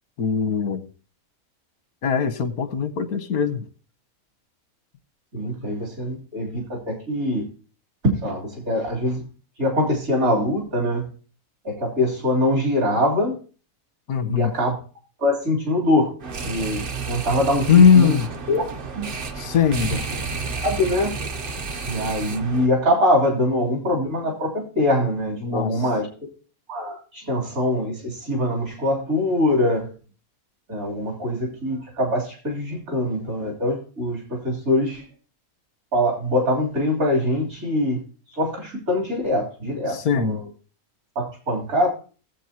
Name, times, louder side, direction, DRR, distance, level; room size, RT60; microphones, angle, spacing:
voice 1, 0.2-0.8 2.0-3.6 14.1-14.5 17.7-18.3 19.4-20.0 25.4-25.7 39.9-40.4, left 7 dB, 90° left, 11 dB, 1.4 m, -19 dB
voice 2, 5.3-7.5 8.0-9.3 9.6-11.1 11.6-13.4 14.3-14.7 15.2-16.1 16.5-18.2 18.5-18.6 19.0-19.1 19.9-20.0 20.6-21.1 21.8-26.1 26.7-29.9 30.7-35.0 35.9-40.5 41.2-41.9, left 1 dB, 70° right, -1 dB, 3.8 m, -23 dB
sound 1, 16.2-22.7, right 4 dB, 50° right, 0.8 m, -31 dB
17.5 x 7.9 x 2.9 m, 0.37 s
omnidirectional pair, 1.5 m